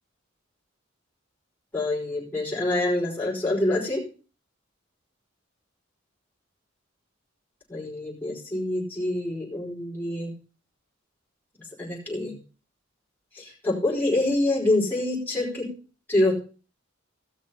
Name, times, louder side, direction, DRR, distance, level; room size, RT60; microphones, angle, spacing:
voice 1, 1.7-4.0 7.7-10.3 11.8-12.4 13.3-15.7 16.1-16.4, left 2 dB, 10° left, -4 dB, 4.9 m, -26 dB
16.5 x 6.5 x 5.6 m, 0.36 s
head